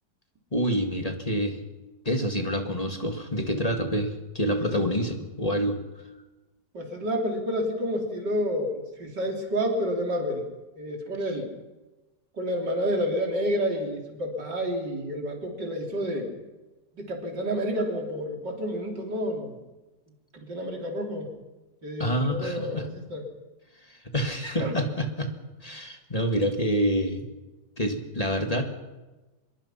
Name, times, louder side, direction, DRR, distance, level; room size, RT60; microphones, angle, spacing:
voice 1, 0.5-1.6 2.1-5.8 22.0-22.9 23.9-25.3 25.6-27.3 27.8-28.6, equal, 20° left, 4 dB, 2.1 m, -27 dB
voice 2, 6.7-10.4 10.8-11.5 12.4-16.3 16.9-19.6 20.3-21.3 21.8-23.2 24.6-24.7, equal, 80° right, 1 dB, 4.2 m, -29 dB
25.5 x 21.5 x 5.8 m, 1.1 s
omnidirectional pair, 1.8 m